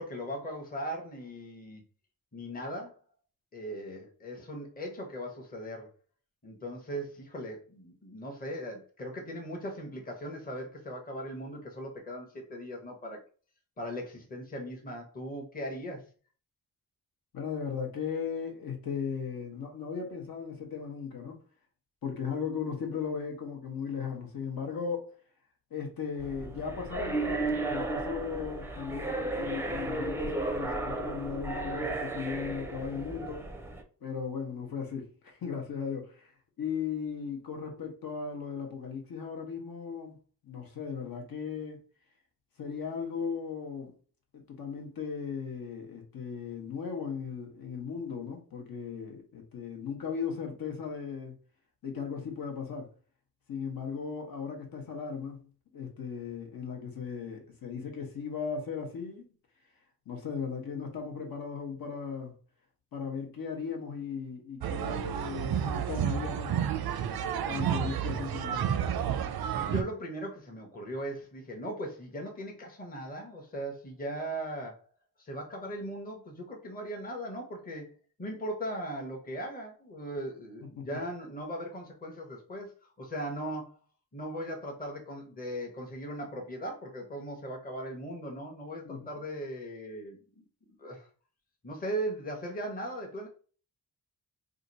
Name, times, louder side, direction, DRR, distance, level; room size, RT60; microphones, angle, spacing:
voice 1, 0.0-1.8 2.3-3.0 3.5-5.9 6.4-13.2 13.8-16.1 69.5-74.8 75.2-77.9 78.2-83.8 84.1-90.4 90.8-91.1 91.6-93.3, right 1 dB, 25° left, 0.8 m, -38 dB
voice 2, 17.3-21.4 22.0-25.1 25.7-33.5 34.0-40.1 40.4-41.8 42.6-43.9 44.3-51.3 51.8-52.9 53.5-55.5 55.7-59.2 60.1-62.3 62.9-66.6 67.4-68.7 80.8-80.9 88.8-89.1, left 6 dB, 75° left, 1.0 m, -37 dB
sound 1, 26.2-33.8, right 2 dB, 5° right, 0.4 m, -34 dB
sound 2, 64.6-69.8, right 9 dB, 90° right, 0.5 m, -31 dB
2.8 x 2.5 x 4.0 m
wide cardioid pair, 165°, 36 cm